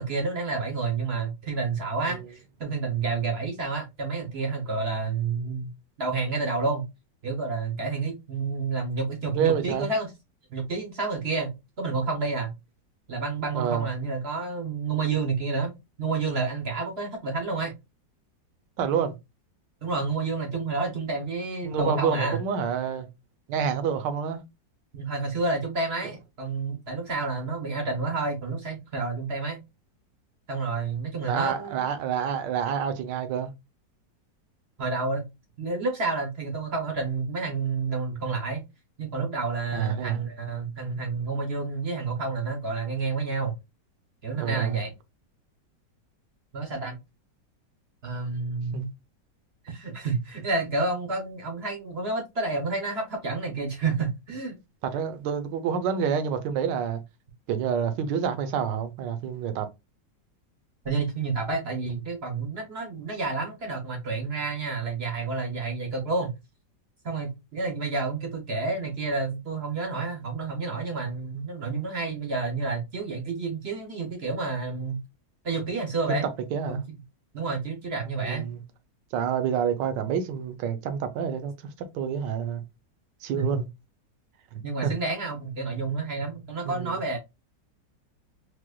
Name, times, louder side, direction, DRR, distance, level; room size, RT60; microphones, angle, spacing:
voice 1, 0.0-6.9 7.2-10.1 10.5-12.5 13.1-15.7 16.0-17.7 19.8-22.4 24.9-29.6 30.5-31.9 34.8-35.3 35.6-38.6 39.0-43.5 44.2-44.9 46.5-47.0 48.0-48.9 49.6-54.6 60.8-66.3 67.0-75.0 75.4-76.3 76.7-76.8 77.3-78.5 83.4-83.5 84.6-87.2, right 4 dB, 55° right, 0.7 m, -29 dB
voice 2, 9.3-9.9 13.5-13.9 18.8-19.1 21.6-23.1 23.5-24.4 31.2-33.5 39.7-40.2 44.3-44.8 48.7-48.9 54.8-57.0 57.5-59.7 76.1-76.2 76.5-76.8 78.2-78.6 79.1-82.6 83.2-83.7 84.5-84.9 86.6-87.0, right 7 dB, 75° right, 1.3 m, -28 dB
4.6 x 2.1 x 2.2 m
omnidirectional pair, 2.0 m